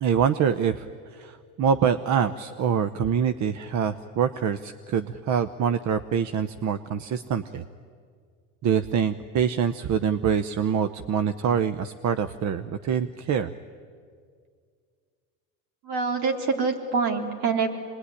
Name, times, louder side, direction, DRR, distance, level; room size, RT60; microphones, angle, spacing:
voice 1, 0.0-0.8 1.1-7.6 8.6-13.5, right 7 dB, 45° right, 11 dB, 1.0 m, -25 dB
voice 2, 15.8-17.7, right 5 dB, 65° right, 2 dB, 3.9 m, -25 dB
26.5 x 21.0 x 9.9 m, 2.1 s
supercardioid pair, 90°, 40 cm